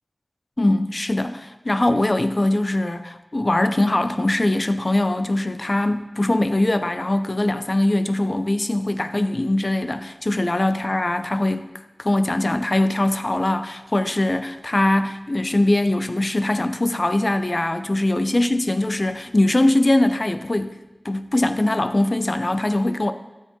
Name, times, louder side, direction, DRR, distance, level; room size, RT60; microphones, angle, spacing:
voice 1, 0.6-11.7 12.0-20.7 21.0-23.1, left 1 dB, 45° left, 9 dB, 0.5 m, -21 dB
12.5 x 7.3 x 2.9 m, 1.0 s
cardioid pair, 40°, 0 cm